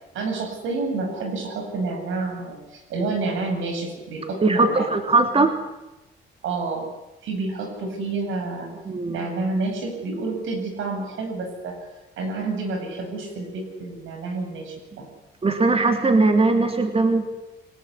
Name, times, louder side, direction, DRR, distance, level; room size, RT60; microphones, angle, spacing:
voice 1, 0.1-4.9 6.4-6.9 7.2-8.7 9.1-11.8 12.2-15.1, right 3 dB, 80° right, 5 dB, 8.0 m, -29 dB
voice 2, 4.4-5.5 8.9-9.2 15.4-17.2, right 3 dB, 30° right, 6 dB, 3.1 m, -19 dB
28.0 x 19.5 x 9.9 m, 1.0 s
cardioid pair, 90°, 20 cm